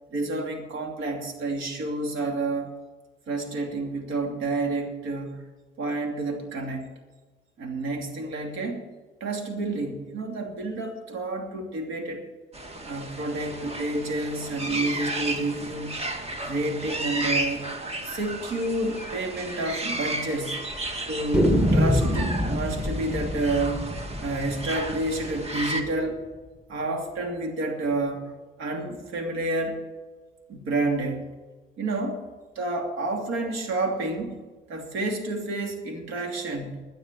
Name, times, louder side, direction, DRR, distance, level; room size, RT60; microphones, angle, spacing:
voice 1, 0.1-2.7 3.3-5.4 5.8-6.9 7.6-8.8 9.2-12.2 12.8-16.0 16.4-17.7 18.0-20.6 21.1-23.8 24.2-26.2 26.7-28.3 28.6-29.8 30.5-31.3 31.8-32.2 32.5-34.3 34.7-36.8, right 2 dB, 90° right, 3 dB, 2.8 m, -29 dB
sound 1, 12.5-25.8, right 1 dB, 30° right, 1.9 m, -34 dB
sound 2, 18.5-18.7 19.0-19.1 19.4-19.5 20.1-20.6 21.3-26.1, equal, 5° right, 1.6 m, -26 dB
11.5 x 11.0 x 7.4 m, 1.3 s
cardioid pair, 90°, 20 cm